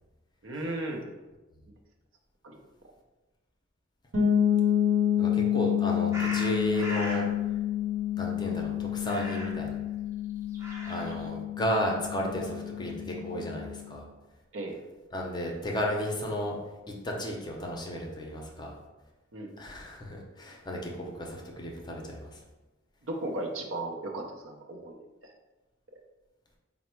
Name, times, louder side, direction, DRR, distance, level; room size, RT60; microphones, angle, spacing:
voice 1, 0.4-1.0 2.4-2.6 14.5-14.8 19.3-19.6 23.1-25.3, right 2 dB, 70° right, 2 dB, 0.6 m, -36 dB
sound 1, 4.1-13.8, left 10 dB, 85° right, 0.9 m, -29 dB
voice 2, 5.2-7.3 8.2-9.8 10.9-14.0 15.1-16.6 17.0-18.7 19.6-22.4, equal, 20° left, -1 dB, 0.6 m, -33 dB
sound 2, 6.1-7.3 9.0-9.7 10.4-11.3, equal, 15° right, 0.7 m, -38 dB
4.2 x 2.0 x 4.4 m, 1.1 s
head